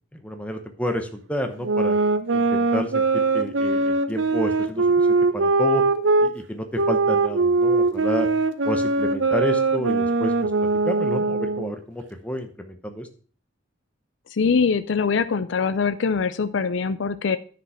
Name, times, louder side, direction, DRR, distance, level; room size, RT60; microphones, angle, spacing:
voice 1, 0.1-1.9 2.3-5.8 6.2-8.3 8.6-13.1, left 1 dB, 5° left, 5 dB, 0.8 m, -30 dB
sound 1, 1.6-6.3 6.8-11.7, right 3 dB, 80° right, 0.7 m, -21 dB
voice 2, 14.3-17.4, left 5 dB, 70° left, 12 dB, 0.5 m, -23 dB
9.9 x 5.1 x 5.7 m, 0.42 s
head